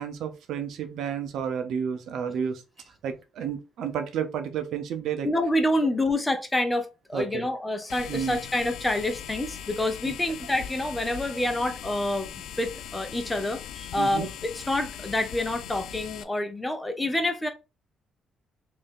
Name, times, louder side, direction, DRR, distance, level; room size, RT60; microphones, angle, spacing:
voice 1, 0.0-2.6 3.0-5.3 7.1-7.5 8.1-8.4 14.0-14.3, right 7 dB, 80° right, 0.6 m, -31 dB
voice 2, 5.2-12.3 12.6-17.5, left 1 dB, 15° left, 0.8 m, -27 dB
sound 1, 7.9-16.2, left 9 dB, 85° left, 0.3 m, -40 dB
3.2 x 2.6 x 3.7 m
cardioid pair, 90°, 0 cm